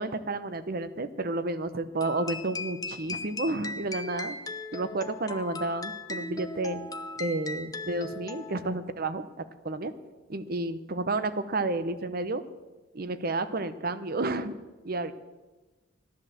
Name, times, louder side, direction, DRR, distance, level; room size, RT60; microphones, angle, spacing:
voice 1, 0.0-4.4 4.7-6.8 7.2-9.2 9.6-9.9 10.3-12.4 12.9-14.5 14.8-15.1, right 2 dB, 50° right, 13 dB, 0.8 m, -31 dB
sound 1, 2.0-8.8, left 3 dB, 20° left, 0.7 m, -38 dB
14.0 x 10.5 x 7.5 m, 1.2 s
head